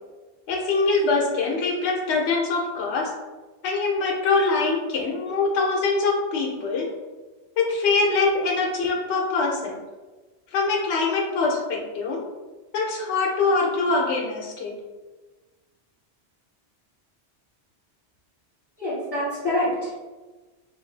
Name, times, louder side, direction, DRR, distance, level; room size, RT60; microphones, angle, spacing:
voice 1, 0.5-3.1 3.6-6.9 7.6-9.8 10.5-12.2 12.7-14.7, left 3 dB, 85° left, -1 dB, 0.9 m, -23 dB
voice 2, 18.8-20.0, left 1 dB, 25° left, -13 dB, 1.5 m, -26 dB
2.9 x 2.4 x 3.2 m, 1.2 s
omnidirectional pair, 1.1 m